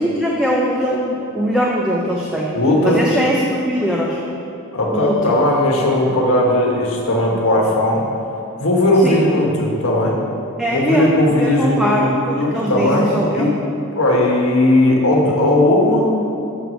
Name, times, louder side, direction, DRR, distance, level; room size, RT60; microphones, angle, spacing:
voice 1, 0.0-2.5 2.8-4.2 4.9-5.4 9.0-9.2 10.6-13.5, equal, 5° right, -3 dB, 0.5 m, -21 dB
voice 2, 2.5-3.1 4.7-8.1 8.6-10.1 10.7-13.5 13.9-16.1, left 1 dB, 65° left, -1 dB, 1.3 m, -17 dB
6.6 x 4.7 x 6.3 m, 2.8 s
head